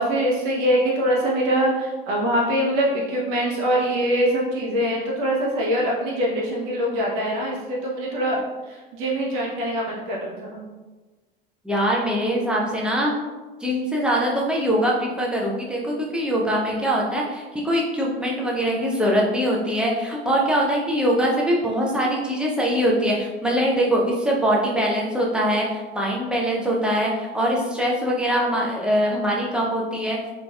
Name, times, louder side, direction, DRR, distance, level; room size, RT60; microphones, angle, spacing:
voice 1, 0.0-8.4 8.7-10.6, equal, 55° right, -3 dB, 0.8 m, -23 dB
voice 2, 11.6-13.1 13.6-30.2, equal, 5° right, -3 dB, 0.5 m, -22 dB
3.2 x 2.4 x 2.3 m, 1.3 s
figure-of-eight pair, 80°, 30 cm